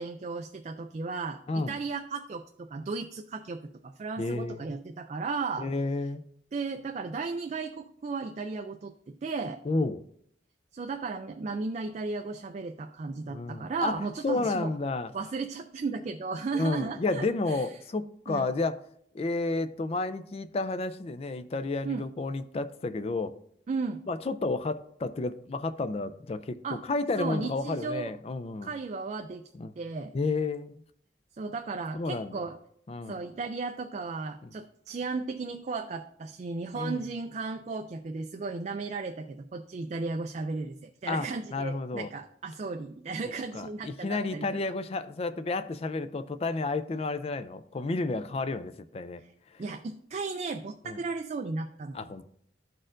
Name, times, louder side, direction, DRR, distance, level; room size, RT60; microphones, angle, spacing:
voice 1, 0.0-5.7 6.5-9.6 10.7-14.7 15.1-17.7 18.3-18.5 21.8-22.0 23.7-24.0 26.6-26.8 27.2-28.1 28.6-29.4 29.8-30.1 31.4-32.6 33.1-44.5 49.6-52.2, right 4 dB, 40° right, 0.3 m, -35 dB
voice 2, 4.2-4.8 5.6-6.2 9.7-10.0 13.3-15.1 16.5-18.8 19.1-23.3 24.1-28.7 29.5-29.7 30.1-30.8 31.9-32.5 32.9-33.2 34.4-34.5 36.7-37.0 41.1-42.1 43.5-49.2 49.5-49.6 50.8-51.0 51.9-52.2, left 3 dB, 35° left, 0.3 m, -31 dB
12.5 x 4.3 x 2.5 m
head